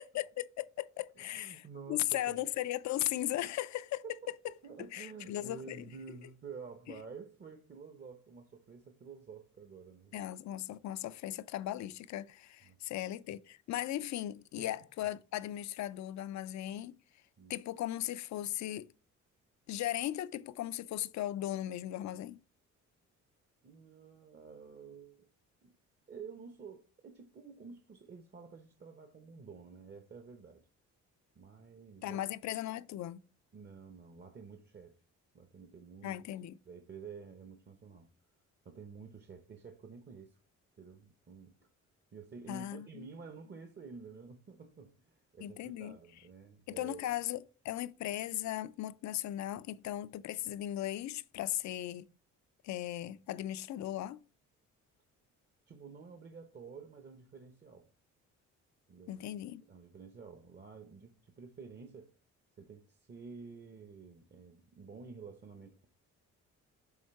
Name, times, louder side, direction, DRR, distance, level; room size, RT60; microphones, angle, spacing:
voice 1, 0.0-4.0 4.9-5.8 10.1-17.0 17.5-18.9 19.7-22.4 32.0-33.2 36.0-36.5 42.5-43.1 45.4-46.0 46.7-52.1 52.6-54.2 59.1-59.6, left 13 dB, 65° left, 0.5 m, -37 dB
voice 2, 1.2-2.4 3.4-3.5 4.0-4.2 4.4-10.3 12.6-12.8 14.6-14.7 17.4-17.6 23.6-25.3 25.6-25.7 26.1-30.7 31.4-32.2 33.5-34.9 35.3-36.2 36.6-38.1 38.6-40.4 40.8-41.7 42.1-47.1 55.7-57.9 58.9-59.2 59.7-62.1 62.6-65.9, right 5 dB, 35° right, 0.8 m, -50 dB
7.3 x 3.6 x 4.6 m
cardioid pair, 90°, 30 cm